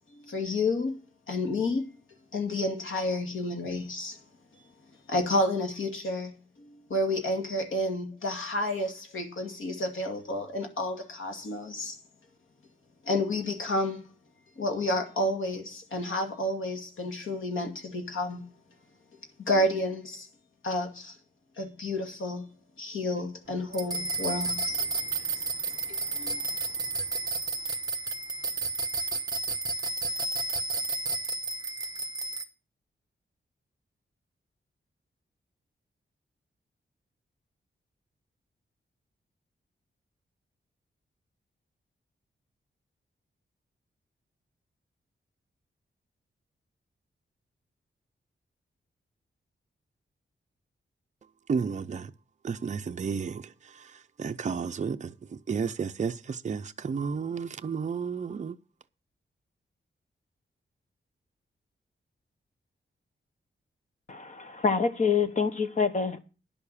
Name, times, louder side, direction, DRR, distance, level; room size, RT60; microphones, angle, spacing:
voice 1, 0.1-1.0 1.3-1.9 2.3-4.2 5.1-6.3 6.6-11.9 13.1-14.1 14.6-18.4 19.5-20.3 20.6-21.2 21.6-22.5 22.8-24.8 25.9-26.4, left 1 dB, 85° left, 2.4 m, -30 dB
sound 1, 23.7-32.4, right 3 dB, 20° right, 1.1 m, -31 dB
voice 2, 51.5-52.1 52.4-53.4 54.2-55.1 55.5-58.6, right 6 dB, 35° right, 0.5 m, -31 dB
voice 3, 64.1-66.2, left 5 dB, 40° left, 1.1 m, -26 dB
10.5 x 7.0 x 6.9 m
wide cardioid pair, 160°, 20 cm